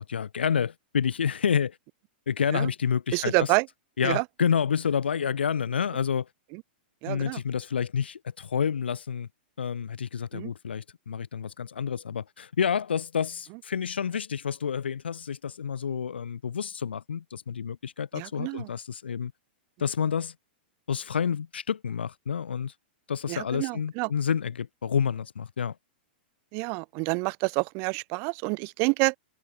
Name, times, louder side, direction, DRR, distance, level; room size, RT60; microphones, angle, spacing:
voice 1, 0.0-1.8 2.3-3.5 4.0-6.3 7.1-9.3 9.6-19.3 19.8-20.3 20.9-22.7 23.1-25.7, left 7 dB, 85° left, 7.7 m, -29 dB
voice 2, 3.1-3.7 4.0-4.2 6.5-6.6 7.0-7.4 10.3-10.5 18.1-18.7 23.3-24.1 26.5-29.2, right 33 dB, 45° right, 7.6 m, -28 dB
hypercardioid pair, 120°, 6 cm